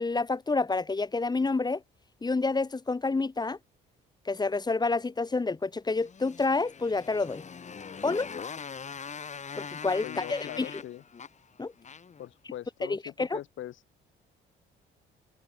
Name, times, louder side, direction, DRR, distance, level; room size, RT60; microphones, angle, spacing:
voice 1, 0.0-1.8 2.2-3.6 4.2-7.4 8.0-8.3 9.5-10.8 11.6-11.7 12.8-13.4, left 3 dB, 20° left, 1.0 m, -28 dB
Motorcycle, 5.9-12.3, left 6 dB, 35° left, 1.5 m, -42 dB
voice 2, 10.0-11.0 12.2-13.8, left 12 dB, 75° left, 3.5 m, -41 dB
cardioid pair, 90°, 20 cm